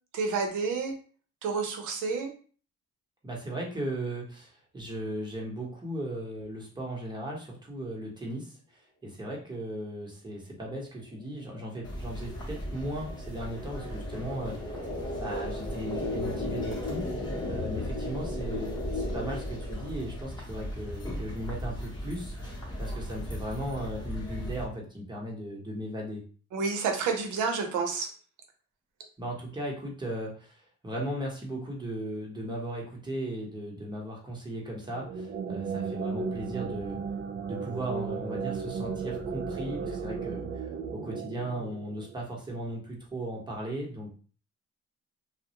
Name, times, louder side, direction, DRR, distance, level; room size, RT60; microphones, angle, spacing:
voice 1, 0.1-0.9 1.4-2.3 26.5-28.1, right 5 dB, 80° right, 4 dB, 0.7 m, -29 dB
voice 2, 3.2-14.6 15.2-22.4 22.8-26.2 29.2-37.0 37.5-40.6 40.9-44.1, right 1 dB, 15° right, -2 dB, 0.9 m, -37 dB
sound 1, 11.4-20.2, left 2 dB, 30° left, 0.6 m, -36 dB
sound 2, 11.8-24.7, equal, 15° left, 0.9 m, -38 dB
sound 3, 34.9-42.3, right 5 dB, 45° right, 0.4 m, -35 dB
2.2 x 2.1 x 2.8 m, 0.40 s
cardioid pair, 90°, 30 cm